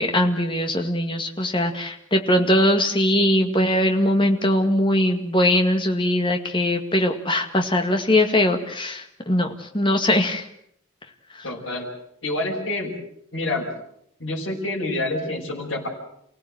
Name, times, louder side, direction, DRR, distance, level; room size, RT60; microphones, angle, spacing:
voice 1, 0.0-10.4, left 1 dB, 25° left, 4 dB, 2.1 m, -21 dB
voice 2, 11.4-11.9 12.2-12.9 13.3-13.7 14.2-15.9, left 2 dB, 60° left, -5 dB, 6.3 m, -27 dB
29.0 x 17.0 x 8.0 m, 0.71 s
head